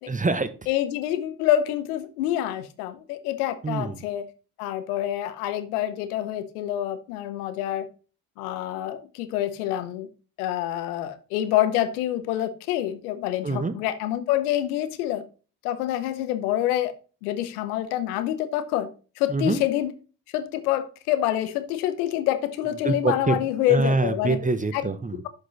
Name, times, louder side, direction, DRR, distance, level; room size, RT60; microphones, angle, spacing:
voice 1, 0.1-0.5 3.6-4.0 13.4-13.7 19.3-19.6 22.8-23.4 23.7-25.2, right 3 dB, 20° right, 0.9 m, -25 dB
voice 2, 0.7-4.3 4.6-7.9 8.4-10.1 10.4-15.2 15.6-16.9 17.2-18.9 19.2-19.9 20.3-24.4 24.7-24.8, left 12 dB, 85° left, 0.9 m, -26 dB
7.6 x 5.4 x 4.1 m
hypercardioid pair, 60°, 44 cm